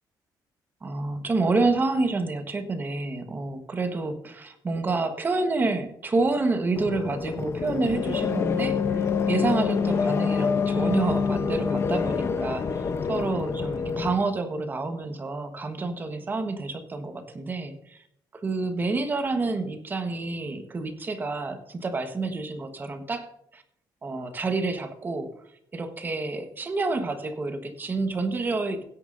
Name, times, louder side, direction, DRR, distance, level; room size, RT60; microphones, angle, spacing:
voice 1, 0.8-18.0 18.3-23.6 24.0-25.3 25.7-28.8, right 3 dB, 25° right, 7 dB, 1.3 m, -28 dB
sound 1, 6.8-14.1, left 6 dB, 35° left, 0.7 m, -26 dB
16.5 x 9.8 x 2.6 m, 0.73 s
cardioid pair, 145°, 8 cm